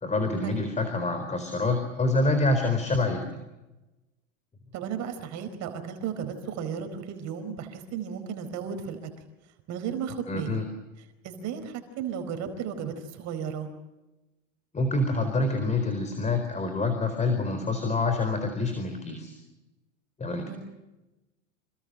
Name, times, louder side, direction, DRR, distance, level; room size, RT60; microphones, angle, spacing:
voice 1, 0.0-3.4 10.3-10.6 14.7-19.4 20.2-20.6, left 2 dB, 20° left, 7 dB, 4.4 m, -26 dB
voice 2, 4.7-9.1 9.7-10.6 11.2-13.7 20.5-20.6, right 7 dB, 45° right, 7 dB, 4.6 m, -34 dB
27.5 x 21.5 x 7.8 m, 1.0 s
hypercardioid pair, 110°, 38 cm